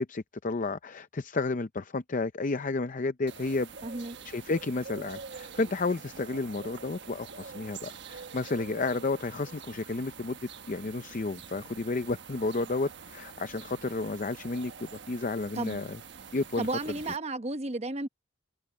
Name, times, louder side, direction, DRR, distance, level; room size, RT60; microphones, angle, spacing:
voice 1, 0.0-3.7 4.2-16.0 16.3-16.7, left 3 dB, 40° left, 0.6 m, -32 dB
sound 1, 3.3-17.2, right 5 dB, 60° right, 1.3 m, -46 dB
voice 2, 3.8-4.2 15.5-15.8 16.6-18.1, right 2 dB, 30° right, 0.9 m, -33 dB
head